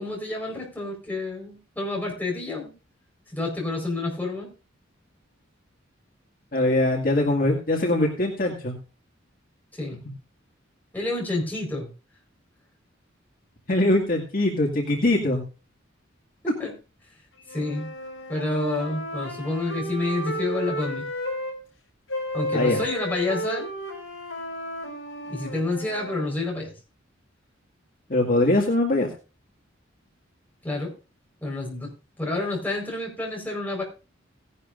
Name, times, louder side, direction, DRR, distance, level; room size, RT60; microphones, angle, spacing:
voice 1, 0.0-2.7 3.3-4.5 9.8-10.0 10.9-11.9 16.4-16.7 17.5-17.9 18.3-21.1 22.3-23.7 24.8-24.9 25.2-26.7 30.6-30.9 31.4-31.9 32.2-33.8, left 2 dB, 10° left, -2 dB, 4.6 m, -29 dB
voice 2, 6.5-8.7 13.7-15.4 22.5-22.8 28.1-29.1, left 1 dB, 45° left, 0 dB, 2.1 m, -22 dB
sound 1, 17.5-21.6 22.1-26.3, equal, 75° left, 5.2 m, -33 dB
17.5 x 11.0 x 2.6 m, 0.31 s
head